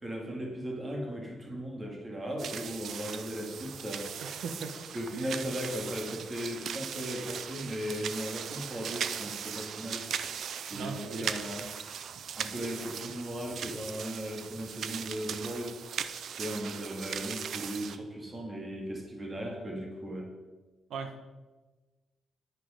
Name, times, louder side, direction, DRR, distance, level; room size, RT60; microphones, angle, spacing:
voice 1, 0.0-4.1 4.9-10.1 10.7-11.7 12.4-15.8 16.3-20.3, equal, 20° right, 0 dB, 2.2 m, -37 dB
sound 1, 2.4-18.0, right 8 dB, 65° right, 0.6 m, -39 dB
voice 2, 4.2-4.8 5.1-5.4 10.7-11.3 20.9-21.2, right 5 dB, 80° right, 7 dB, 1.4 m, -39 dB
10.0 x 9.5 x 5.2 m, 1.2 s
wide cardioid pair, 155°, 0 cm